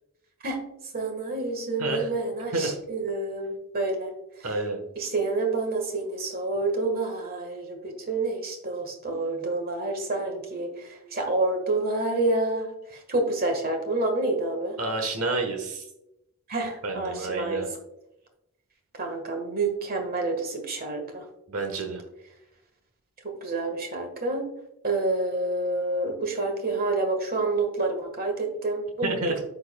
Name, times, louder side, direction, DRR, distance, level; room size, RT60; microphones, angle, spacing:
voice 1, 0.9-4.1 4.4-4.5 4.9-14.7 16.5-17.6 19.0-21.2 23.2-24.5 24.8-29.1, right 2 dB, 45° right, 3 dB, 1.5 m, -28 dB
voice 2, 1.8-2.1 2.5-2.8 4.4-4.8 14.8-15.8 16.8-17.7 21.5-22.0 29.0-29.4, right 3 dB, 70° right, 3 dB, 1.2 m, -29 dB
13.0 x 4.7 x 2.3 m, 0.86 s
head